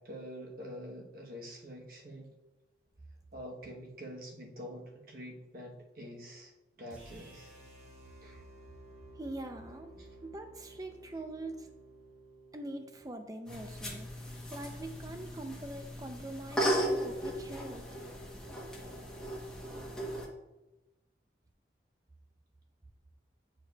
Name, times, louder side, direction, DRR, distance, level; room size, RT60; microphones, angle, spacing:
voice 1, 0.0-2.3 3.3-6.5 6.8-7.5 8.2-8.4 10.0-10.1, equal, 50° right, 0 dB, 1.1 m, -46 dB
sound 1, 6.9-13.0, right 1 dB, 35° right, 1.3 m, -54 dB
voice 2, 9.2-9.9 10.2-11.7 12.5-18.0, right 1 dB, 20° right, 6 dB, 0.5 m, -43 dB
sound 2, 13.5-20.3, equal, 5° left, 1.0 m, -36 dB
9.6 x 4.6 x 2.3 m, 1.0 s
head